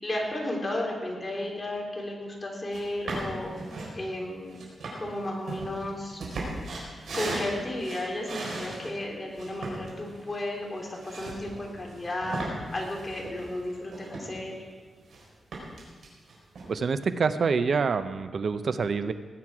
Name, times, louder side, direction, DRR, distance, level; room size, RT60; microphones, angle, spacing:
voice 1, 0.0-3.5 3.9-4.6 4.9-6.2 7.1-12.4 12.7-14.5, left 1 dB, 25° left, -1 dB, 3.3 m, -33 dB
sound 1, 2.7-2.8 3.1-3.9 4.5-8.9 9.3-14.6 14.8-15.2 15.5-16.7, right 2 dB, 75° right, 4.5 m, -37 dB
voice 2, 16.7-19.1, right 5 dB, 55° right, 11 dB, 0.7 m, -26 dB
19.0 x 9.3 x 4.8 m, 1.5 s
cardioid pair, 100°, 0 cm